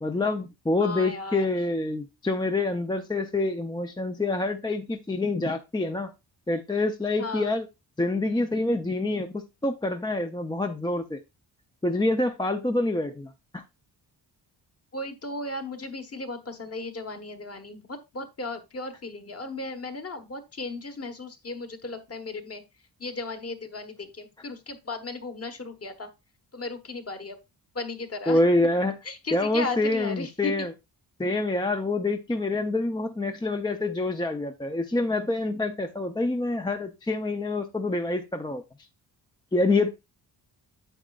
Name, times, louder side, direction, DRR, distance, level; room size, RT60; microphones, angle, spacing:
voice 1, 0.0-6.1 6.5-7.7 8.0-11.2 11.8-13.6 28.3-28.9 29.3-30.7 31.2-38.6 39.5-39.9, left 2 dB, 10° left, 0.5 m, -26 dB
voice 2, 0.8-1.5 7.2-7.6 14.9-22.6 23.0-26.1 26.5-27.4 27.7-28.4 29.1-30.5, left 3 dB, 35° left, 1.2 m, -35 dB
8.9 x 7.3 x 2.4 m
wide cardioid pair, 130°, 42 cm